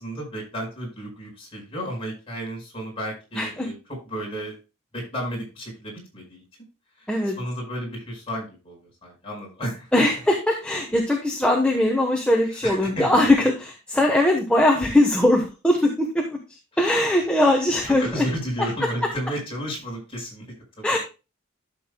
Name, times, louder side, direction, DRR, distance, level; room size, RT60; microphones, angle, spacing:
voice 1, 0.0-4.6 4.9-6.4 7.0-7.1 7.4-10.0 12.4-13.3 16.7-17.1 17.4-17.5 17.8-21.0, equal, 25° left, -1 dB, 5.1 m, -33 dB
voice 2, 3.3-3.7 7.1-7.4 9.9-16.2 16.8-18.3 18.8-18.9 20.8-21.0, left 1 dB, 5° left, 0 dB, 1.1 m, -20 dB
12.5 x 7.2 x 2.3 m, 0.29 s
head